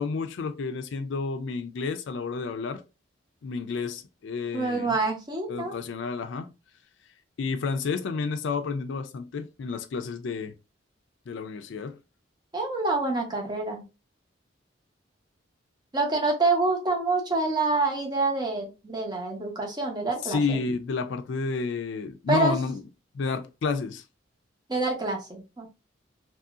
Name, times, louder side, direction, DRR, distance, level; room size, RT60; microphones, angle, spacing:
voice 1, 0.0-2.8 3.4-5.0 5.5-6.5 7.4-10.5 11.3-12.0 20.2-22.8 23.1-24.0, left 4 dB, 70° left, 0.4 m, -30 dB
voice 2, 4.5-5.8 12.5-13.8 15.9-20.6 22.3-22.6 24.7-25.7, right 3 dB, 20° right, 0.7 m, -27 dB
2.9 x 2.7 x 2.4 m
head